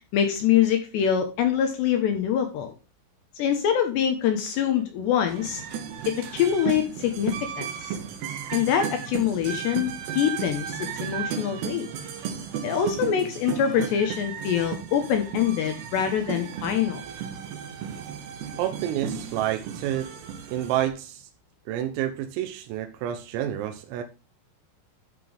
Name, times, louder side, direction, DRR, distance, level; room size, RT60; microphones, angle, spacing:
voice 1, 0.1-2.7 3.4-5.6 6.1-8.0 8.5-11.9 12.6-17.0, left 9 dB, 70° left, 2.8 m, -24 dB
sound 1, 5.3-20.9, right 8 dB, 65° right, 3.2 m, -34 dB
voice 2, 18.6-20.2 20.5-21.3 21.7-24.0, right 12 dB, 85° right, 3.5 m, -29 dB
13.0 x 5.9 x 3.4 m
omnidirectional pair, 5.9 m